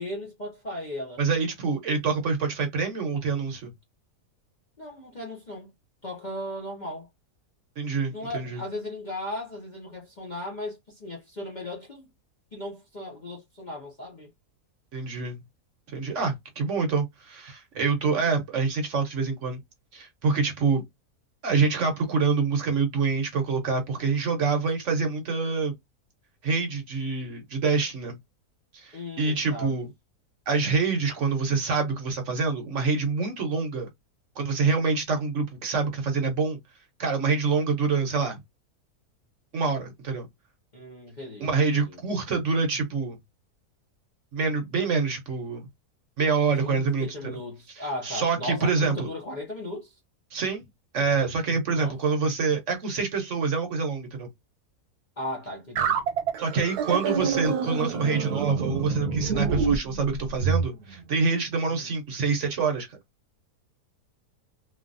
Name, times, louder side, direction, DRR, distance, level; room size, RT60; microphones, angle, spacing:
voice 1, 0.0-1.2 4.8-5.7 6.0-7.1 8.1-12.1 12.5-14.3 18.1-18.4 28.9-29.8 40.7-42.0 46.4-50.0 51.7-52.0 55.2-56.0 61.8-61.9, left 1 dB, 40° left, 0.6 m, -37 dB
voice 2, 1.2-3.7 7.8-8.6 14.9-15.4 15.9-19.6 19.9-20.9 21.4-25.7 26.4-28.2 28.7-29.9 30.5-33.9 34.4-36.6 37.0-38.4 39.5-40.3 41.4-43.2 44.3-45.7 46.2-47.4 47.8-49.1 50.3-50.6 50.9-54.3 56.4-63.0, right 4 dB, 55° right, 1.0 m, -26 dB
sound 1, 55.8-60.7, right 6 dB, 75° right, 1.3 m, -27 dB
3.2 x 2.3 x 2.5 m
omnidirectional pair, 1.7 m